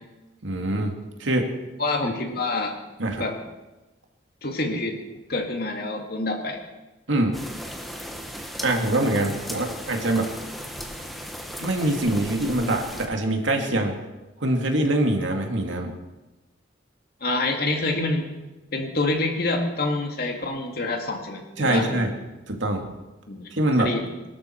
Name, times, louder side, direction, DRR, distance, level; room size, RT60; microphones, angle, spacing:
voice 1, 0.4-1.5 2.0-2.1 3.0-3.2 7.1-7.4 8.6-10.3 11.6-14.0 14.4-16.0 21.6-22.2 22.5-22.9 23.5-23.9, right 1 dB, 80° right, 2 dB, 2.4 m, -24 dB
voice 2, 1.8-2.8 3.2-3.4 4.4-5.0 5.3-6.6 17.2-18.4 18.7-22.1 23.3-24.1, left 2 dB, 55° left, 3 dB, 2.3 m, -27 dB
sound 1, 7.3-13.1, equal, ahead, 1.4 m, -36 dB
23.0 x 12.5 x 4.7 m, 1.1 s
head